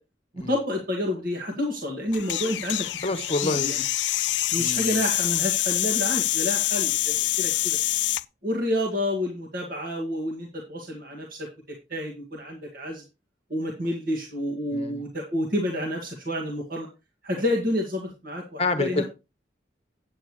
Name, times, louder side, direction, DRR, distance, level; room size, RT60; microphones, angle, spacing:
voice 1, 0.3-3.0 3.4-3.8 4.5-7.8 8.4-11.5 11.9-13.0 13.5-16.9 17.2-19.0, left 1 dB, 50° right, 2.0 m, -29 dB
sound 1, 2.1-8.2, left 16 dB, 75° left, 0.4 m, -26 dB
voice 2, 3.0-3.7 4.6-5.0 14.7-15.0 18.6-19.0, left 2 dB, 35° left, 1.0 m, -27 dB
9.3 x 9.0 x 3.2 m
head